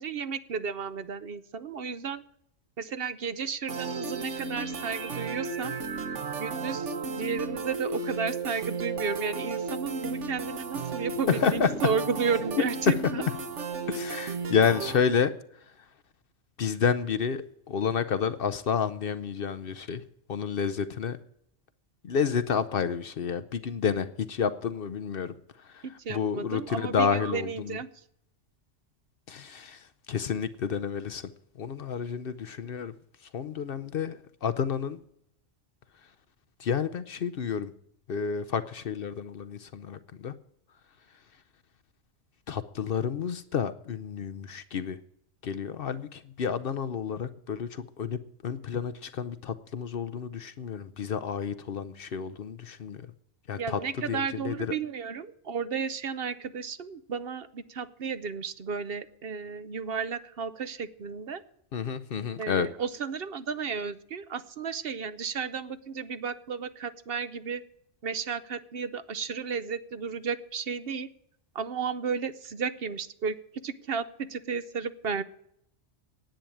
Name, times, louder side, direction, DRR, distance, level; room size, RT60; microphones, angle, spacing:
voice 1, 0.0-2.2 2.8-5.7 6.4-13.3 26.0-27.9 53.6-61.4 62.4-67.6 68.0-71.1 71.5-73.4 73.6-75.2, right 6 dB, 60° right, 13 dB, 0.9 m, -33 dB
sound 1, 3.7-15.0, right 4 dB, 75° right, 1.5 m, -34 dB
voice 2, 11.3-11.7 13.9-15.3 16.6-20.0 20.3-21.2 22.0-25.3 25.7-25.8 26.1-27.8 29.3-31.2 31.6-32.9 33.3-35.0 36.6-37.7 38.1-40.3 42.5-45.0 45.4-53.0 53.5-53.8 54.1-54.7 61.7-62.7, left 7 dB, 55° left, 13 dB, 0.8 m, -30 dB
10.5 x 9.0 x 8.5 m, 0.73 s
omnidirectional pair, 1.2 m